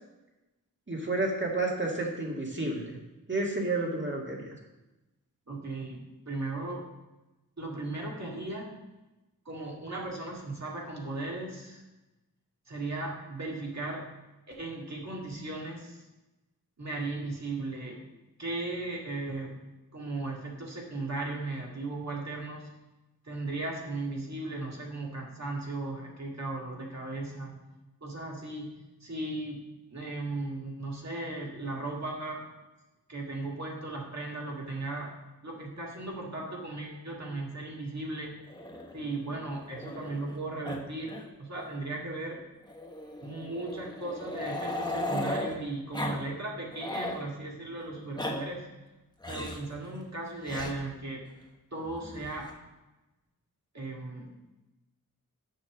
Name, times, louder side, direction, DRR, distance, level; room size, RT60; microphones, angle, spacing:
voice 1, 0.9-3.0 3.3-4.6, right 2 dB, 35° right, -2 dB, 1.9 m, -30 dB
voice 2, 5.5-6.9 7.6-8.7 9.5-11.8 12.7-14.1 14.5-16.0 16.8-18.0 18.4-19.5 19.9-22.7 23.2-27.6 28.0-28.7 29.0-29.6 29.9-32.4 33.1-35.2 35.4-38.4 38.9-42.4 43.2-48.7 49.3-51.2 51.7-52.5 53.7-54.3, right 2 dB, 50° right, -2 dB, 2.0 m, -36 dB
Growling, 38.5-40.4 40.6-40.8 41.1-41.2 41.6-41.7 42.7-45.5 45.9-46.2 46.5-47.2 47.9-48.3 49.2-49.7 50.4-50.7 51.9-52.5, left 1 dB, 10° left, 1.1 m, -36 dB
6.6 x 5.6 x 6.2 m, 1.0 s
wide cardioid pair, 85°, 35 cm